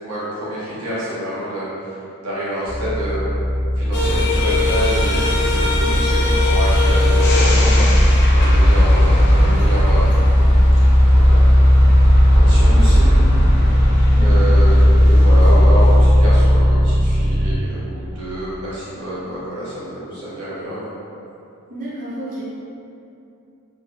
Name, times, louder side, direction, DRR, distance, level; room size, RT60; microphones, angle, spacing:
voice 1, 0.0-1.9 2.2-3.3 3.8-8.0 8.3-10.3 11.0-11.4 12.3-13.1 13.7-13.8 14.1-20.8, right 1 dB, 85° right, -10 dB, 1.3 m, -28 dB
sound 1, 2.6-17.5, equal, 15° right, 0.9 m, -15 dB
sound 2, 3.9-16.1, equal, 50° left, 0.4 m, -20 dB
voice 2, 5.8-6.3 12.6-13.1 14.2-14.4 21.7-22.4, equal, 35° right, -9 dB, 0.5 m, -31 dB
3.3 x 3.3 x 2.2 m, 2.7 s
head